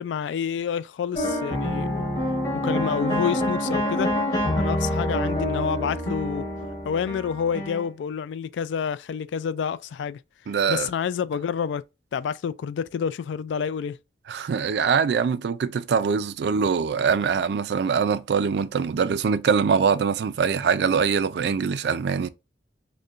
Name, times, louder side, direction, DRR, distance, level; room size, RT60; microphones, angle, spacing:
voice 1, 0.0-2.1 2.6-4.1 4.6-6.5 6.8-10.2 10.7-11.8 12.1-14.0, left 7 dB, 85° left, 0.3 m, -28 dB
sound 1, 1.1-7.8, left 1 dB, 20° left, 1.3 m, -26 dB
voice 2, 10.5-10.9 14.3-22.3, right 6 dB, 65° right, 0.3 m, -23 dB
6.4 x 2.2 x 2.4 m
head